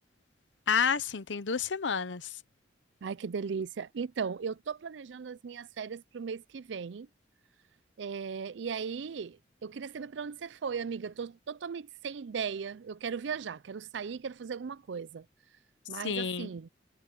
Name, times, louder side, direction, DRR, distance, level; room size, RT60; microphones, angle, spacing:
voice 1, 0.7-2.4 16.0-16.5, left 6 dB, 80° left, 0.9 m, -30 dB
voice 2, 3.0-7.1 8.0-15.3 15.9-16.7, right 6 dB, 75° right, 0.4 m, -37 dB
head